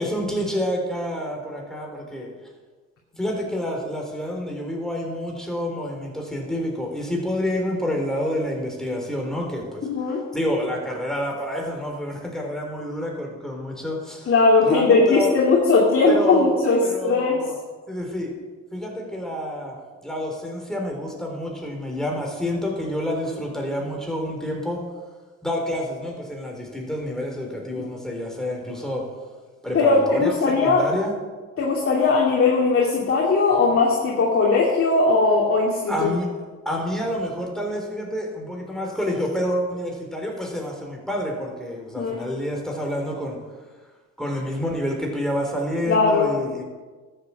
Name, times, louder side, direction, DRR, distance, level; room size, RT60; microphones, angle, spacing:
voice 1, 0.0-2.3 3.2-9.9 10.3-14.3 14.6-15.3 16.1-17.6 17.9-18.3 18.7-19.8 20.0-24.8 25.4-29.0 29.6-30.3 30.6-31.1 35.9-36.3 36.7-43.4 44.2-46.6, equal, ahead, 0 dB, 3.8 m, -28 dB
voice 2, 9.8-10.2 14.3-17.4 27.7-27.8 29.7-30.9 31.6-35.9 42.0-42.3 45.9-46.3, left 3 dB, 45° left, -3 dB, 2.5 m, -19 dB
13.0 x 7.8 x 7.3 m, 1.4 s
cardioid pair, 90°, 30 cm